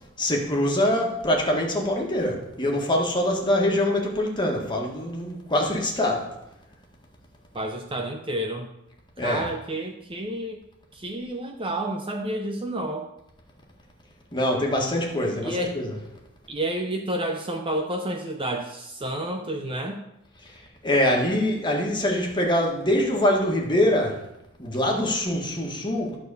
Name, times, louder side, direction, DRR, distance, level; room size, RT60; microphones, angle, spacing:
voice 1, 0.2-6.3 9.2-9.4 14.3-16.0 20.8-24.2 24.6-26.2, left 1 dB, 20° left, 0 dB, 1.7 m, -24 dB
voice 2, 7.5-8.7 9.2-10.6 10.9-13.1 15.4-15.8 16.5-20.0, right 1 dB, 25° right, 3 dB, 0.7 m, -30 dB
12.5 x 4.2 x 6.9 m, 0.87 s
head